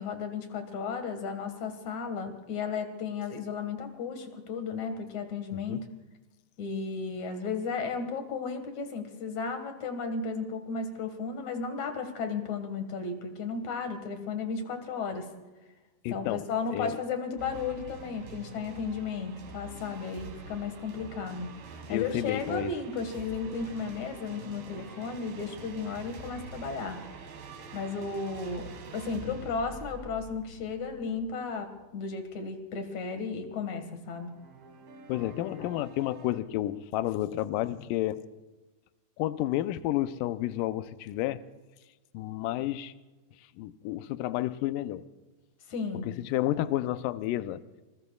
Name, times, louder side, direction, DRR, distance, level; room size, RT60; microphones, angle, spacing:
voice 1, 0.0-5.8 6.6-15.3 16.1-27.0 27.7-34.3 45.7-46.0, left 5 dB, 55° left, 6 dB, 2.8 m, -34 dB
voice 2, 16.0-16.4 16.7-17.0 21.9-22.8 35.1-38.2 39.2-41.4 42.1-42.9 43.6-45.0 46.0-47.6, left 14 dB, 80° left, 12 dB, 2.1 m, -31 dB
sound 1, 17.4-32.3 34.1-36.4, right 4 dB, 85° right, 3.8 m, -46 dB
26.0 x 20.5 x 2.4 m, 1.2 s
omnidirectional pair, 4.2 m